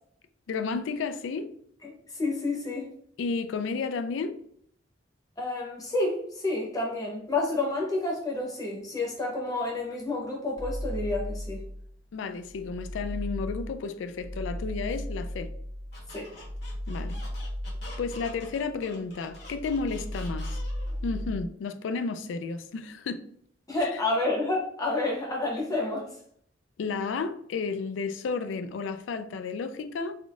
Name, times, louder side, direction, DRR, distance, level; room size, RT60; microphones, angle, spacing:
voice 1, 0.5-1.5 3.2-4.4 12.1-15.5 16.9-17.2 18.0-20.6 21.0-23.2 23.8-24.0 26.8-30.1, left 4 dB, 75° left, 0.3 m, -32 dB
voice 2, 1.8-2.9 5.4-11.6 16.1-16.3 23.7-26.1, left 2 dB, 20° left, 0.8 m, -29 dB
sound 1, 10.5-12.0 12.4-18.9 19.2-21.5, equal, 45° right, 0.8 m, -36 dB
Squeak, 15.9-21.0, left 2 dB, 60° left, 1.1 m, -47 dB
3.5 x 2.5 x 2.4 m
head